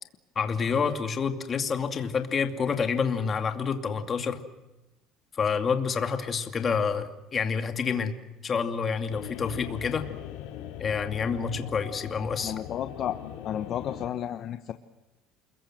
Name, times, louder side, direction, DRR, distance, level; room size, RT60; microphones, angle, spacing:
voice 1, 0.4-4.4 5.3-8.2 8.4-10.1 10.8-12.5, left 6 dB, 25° left, 7 dB, 2.5 m, -28 dB
sound 1, 9.1-14.1, left 11 dB, 85° left, 5.8 m, -40 dB
voice 2, 12.4-13.2 13.4-14.7, left 10 dB, 45° left, 8 dB, 1.2 m, -32 dB
29.0 x 21.5 x 7.8 m, 1.0 s
cardioid pair, 150°, 0 cm